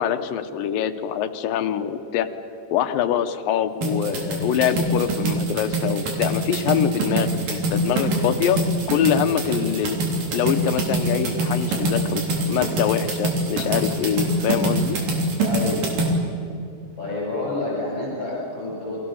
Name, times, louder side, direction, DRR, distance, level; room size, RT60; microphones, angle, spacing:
voice 1, 0.0-2.3 2.7-8.6 8.9-10.0 10.3-12.2 12.5-15.0, left 9 dB, 85° left, 9 dB, 2.7 m, -24 dB
sound 1, 3.8-16.1, right 2 dB, 70° right, 5.0 m, -24 dB
voice 2, 15.4-15.8 17.0-19.0, left 2 dB, 35° left, -5 dB, 8.0 m, -28 dB
29.5 x 23.5 x 7.1 m, 2.6 s
omnidirectional pair, 3.9 m